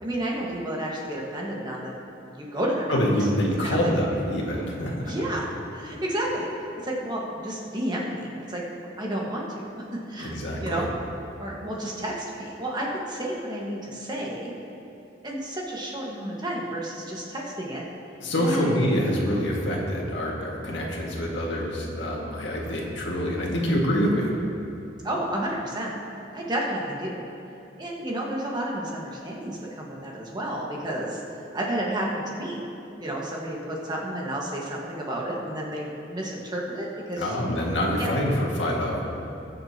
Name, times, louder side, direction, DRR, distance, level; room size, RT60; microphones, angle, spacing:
voice 1, 0.0-1.9 2.2-3.0 3.6-3.9 5.0-5.4 5.7-6.5 6.8-8.6 9.0-10.3 10.6-10.9 11.4-14.5 15.2-17.9 18.4-18.7 25.0-25.9 26.3-27.2 27.8-31.2 31.5-32.6 33.0-37.3 37.7-38.1, right 1 dB, 25° right, -3 dB, 1.5 m, -31 dB
voice 2, 2.9-5.1 10.2-10.9 18.2-24.3 37.2-39.0, equal, 85° left, -2 dB, 1.9 m, -26 dB
20.5 x 7.4 x 2.9 m, 2.8 s
head